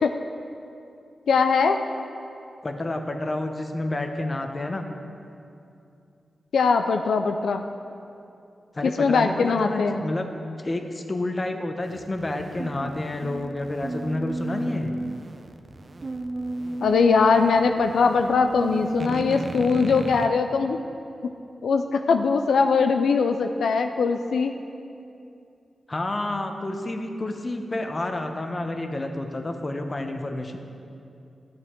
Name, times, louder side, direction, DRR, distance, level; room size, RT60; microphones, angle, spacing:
voice 1, 1.3-1.8 6.5-7.6 8.8-10.0 16.8-20.8 21.6-24.5, left 5 dB, 90° left, 6 dB, 0.3 m, -21 dB
voice 2, 2.6-4.9 8.7-10.3 10.6-14.9 25.9-30.6, left 2 dB, 35° left, 5 dB, 0.8 m, -29 dB
sound 1, 11.8-20.3, right 2 dB, 45° right, 0.6 m, -34 dB
12.5 x 7.6 x 3.7 m, 2.6 s
cardioid pair, 65°, 0 cm